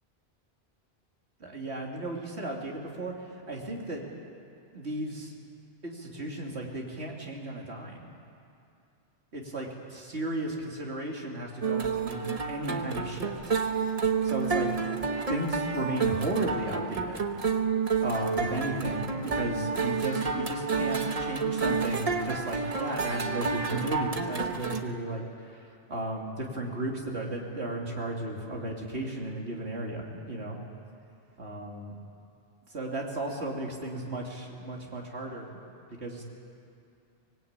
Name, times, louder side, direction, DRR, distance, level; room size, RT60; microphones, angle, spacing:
voice 1, 1.4-3.1 3.5-4.0 4.7-5.3 5.8-8.1 9.3-13.5 14.2-14.7 15.3-17.3 18.0-30.6 31.4-32.0 32.7-35.6 36.0-36.2, right 1 dB, 85° right, -1 dB, 2.9 m, -35 dB
sound 1, 11.6-24.8, right 5 dB, 35° right, 1.2 m, -30 dB
24.5 x 19.5 x 8.8 m, 2.6 s
omnidirectional pair, 1.1 m